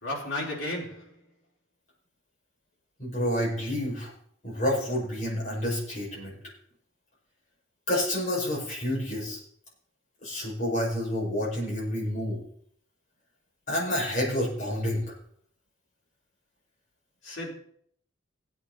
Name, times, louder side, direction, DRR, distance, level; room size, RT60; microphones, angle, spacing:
voice 1, 0.0-1.2 17.2-17.5, left 1 dB, 70° left, 4.0 m, -33 dB
voice 2, 3.0-4.1 4.4-6.4 7.9-9.4 10.2-12.4 13.7-15.0, left 1 dB, 35° left, 5.6 m, -29 dB
17.0 x 8.6 x 4.0 m
head